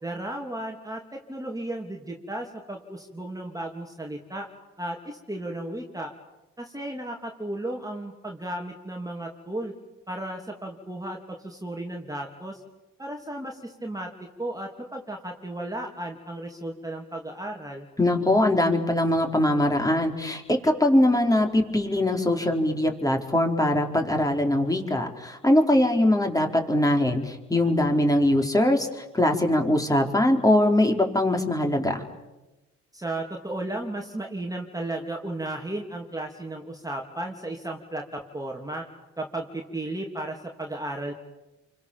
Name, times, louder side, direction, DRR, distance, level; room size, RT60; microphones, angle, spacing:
voice 1, 0.0-4.5 4.8-6.1 6.6-9.7 10.1-11.2 11.4-12.6 13.0-14.1 14.4-17.9 32.9-38.8 39.2-41.1, right 1 dB, 10° right, 1 dB, 3.1 m, -34 dB
voice 2, 18.0-32.0, left 1 dB, 10° left, 3 dB, 4.6 m, -22 dB
30.0 x 24.5 x 7.4 m, 1.0 s
cardioid pair, 90°, 30 cm